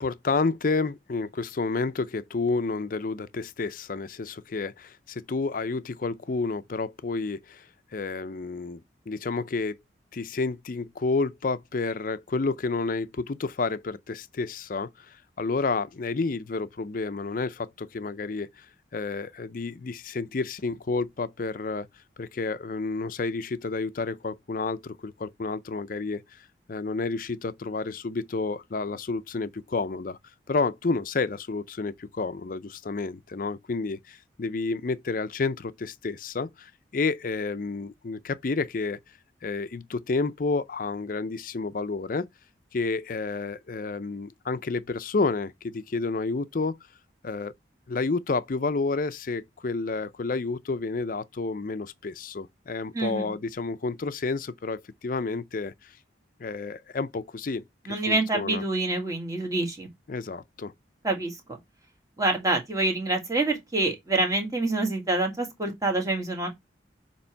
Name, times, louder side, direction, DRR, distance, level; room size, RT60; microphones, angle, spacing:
voice 1, 0.0-9.8 10.1-18.7 18.9-21.9 22.2-30.2 30.5-39.0 39.4-42.3 42.7-46.8 47.2-47.5 47.9-56.0 56.4-57.6 58.1-58.6 60.1-60.7, left 3 dB, 50° left, 0.5 m, -30 dB
voice 2, 52.9-53.3 57.9-59.9 61.0-61.3 62.2-66.5, right 2 dB, 20° right, 1.7 m, -26 dB
7.0 x 3.0 x 4.4 m
head